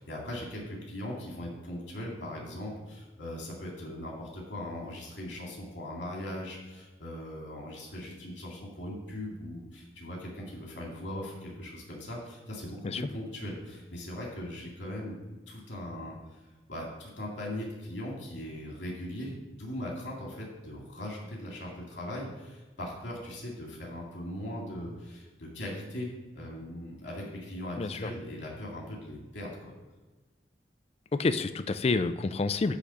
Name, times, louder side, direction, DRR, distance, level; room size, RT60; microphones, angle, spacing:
voice 1, 0.0-15.2 15.5-16.4 16.7-29.7, left 1 dB, 80° left, -2 dB, 2.3 m, -39 dB
voice 2, 27.8-28.1 31.1-32.8, left 3 dB, 35° left, 12 dB, 0.4 m, -28 dB
9.9 x 3.8 x 6.9 m, 1.2 s
head